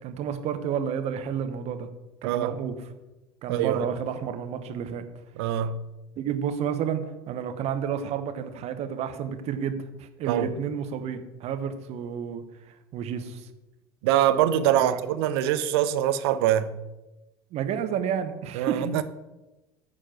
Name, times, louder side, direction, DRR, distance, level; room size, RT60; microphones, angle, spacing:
voice 1, 0.0-1.9 2.2-2.7 3.4-5.1 6.2-13.5 14.8-15.0 17.5-18.9, right 8 dB, 55° right, 1.0 m, -31 dB
voice 2, 2.2-2.5 3.5-3.8 5.4-5.8 10.3-10.5 14.0-16.8 18.5-19.0, right 11 dB, 70° right, 0.6 m, -24 dB
9.2 x 4.4 x 5.9 m
hypercardioid pair, 70°, 14 cm